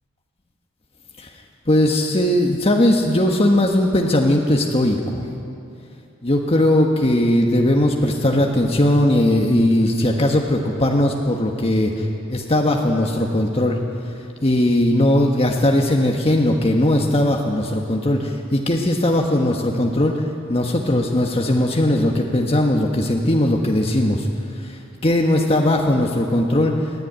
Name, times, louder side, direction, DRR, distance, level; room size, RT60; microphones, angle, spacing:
voice 1, 1.7-5.2 6.2-13.8 14.4-24.3 24.6-26.9, left 1 dB, 30° left, 1 dB, 1.4 m, -19 dB
27.0 x 11.0 x 9.7 m, 2.6 s
head